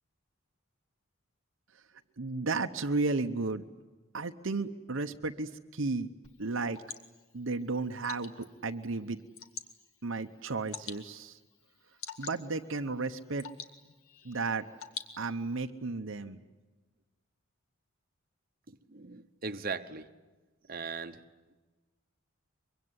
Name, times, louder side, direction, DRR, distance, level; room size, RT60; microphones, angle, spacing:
voice 1, 2.2-3.6 4.1-6.1 6.4-6.8 7.3-9.2 10.0-11.4 12.2-13.5 14.2-14.6 15.2-16.4, right 3 dB, 65° right, 6 dB, 0.9 m, -33 dB
Water / Drip, 6.2-15.6, left 7 dB, 80° left, 1.9 m, -48 dB
voice 2, 18.7-20.1 20.7-21.2, right 4 dB, 40° right, 8 dB, 1.0 m, -39 dB
24.0 x 23.0 x 9.7 m, 1.2 s
head